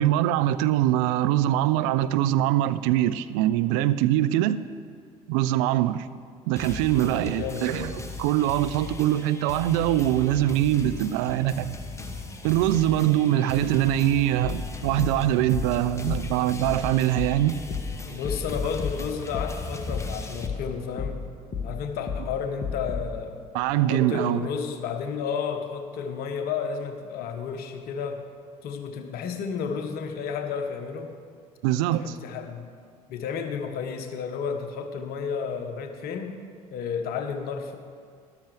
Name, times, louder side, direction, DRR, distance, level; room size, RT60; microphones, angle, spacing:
voice 1, 0.0-4.6 5.3-6.1 6.5-7.9 8.2-11.8 12.4-17.6 23.5-24.4 31.6-32.2, right 13 dB, 60° right, 0.4 m, -23 dB
sound 1, 6.6-20.5, left 2 dB, 15° left, 1.1 m, -38 dB
voice 2, 7.0-7.9 18.1-21.3 21.6-23.4 23.9-28.2 28.6-31.2 31.8-32.7 33.1-36.4 36.7-37.8, left 6 dB, 55° left, 1.1 m, -32 dB
sound 2, 14.4-23.2, left 5 dB, 35° left, 1.5 m, -34 dB
13.0 x 12.0 x 3.3 m
figure-of-eight pair, 60°, 19 cm